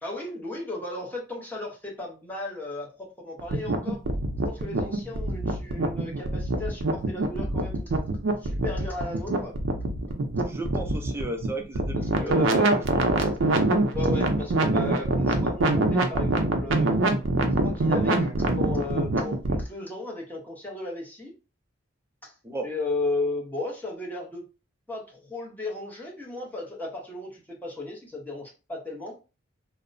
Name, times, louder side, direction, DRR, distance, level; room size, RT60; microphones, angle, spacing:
voice 1, 0.0-4.0 4.4-7.9 8.4-9.6 11.9-12.8 13.2-13.3 13.9-16.9 17.6-21.3 22.2-22.3 22.6-24.4 24.9-29.2, left 2 dB, 10° left, -3 dB, 0.8 m, -35 dB
sound 1, 3.4-19.6, right 2 dB, 75° right, 0.5 m, -25 dB
voice 2, 10.4-12.4 12.7-12.8 22.4-22.7, right 1 dB, 15° right, 3 dB, 0.4 m, -33 dB
2.8 x 2.0 x 2.5 m, 0.30 s
head